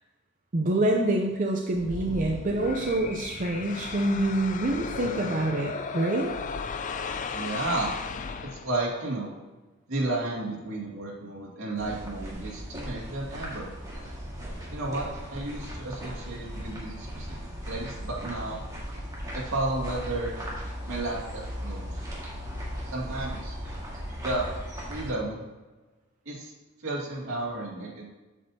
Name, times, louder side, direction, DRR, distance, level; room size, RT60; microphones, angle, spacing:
voice 1, 0.5-6.3, right 1 dB, 40° right, 0 dB, 0.6 m, -26 dB
sound 1, 1.7-9.0, left 5 dB, 40° left, 0.4 m, -35 dB
voice 2, 7.3-7.9 8.5-9.3 9.9-13.7 14.7-17.4 17.6-18.6 19.3-20.3 20.9-22.1 22.8-23.6 24.2-24.5 24.9-25.4 26.3-26.5 26.8-28.1, right 2 dB, 75° right, -4 dB, 2.2 m, -32 dB
sound 2, 11.8-25.1, equal, 15° right, 1.8 m, -37 dB
8.2 x 7.1 x 2.8 m, 1.2 s
head